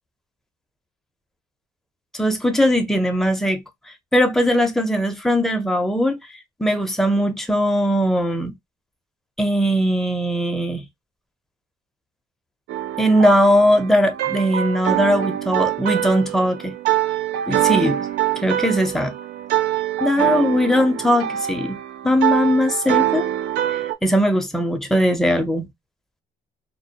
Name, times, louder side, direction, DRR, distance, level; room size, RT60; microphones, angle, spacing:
voice 1, 2.1-3.6 4.1-6.2 6.6-8.5 9.4-10.8 13.0-16.7 17.5-18.0 18.4-19.1 20.0-21.8 22.0-23.3 24.0-25.7, equal, ahead, 0.5 m, -19 dB
sound 1, 12.7-23.9, right 13 dB, 75° right, 0.4 m, -24 dB
2.2 x 2.1 x 2.7 m
cardioid pair, 110°, 17 cm